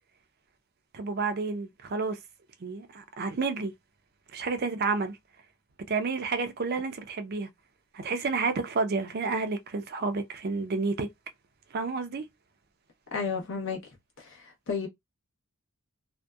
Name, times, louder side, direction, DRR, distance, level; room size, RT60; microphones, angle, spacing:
voice 1, 0.9-2.2 2.6-3.7 4.3-5.2 5.9-7.5 7.9-11.1 11.7-12.2, right 4 dB, 45° right, 0.5 m, -30 dB
voice 2, 13.1-13.8 14.7-14.9, left 5 dB, 60° left, 0.9 m, -30 dB
2.6 x 2.1 x 2.2 m
head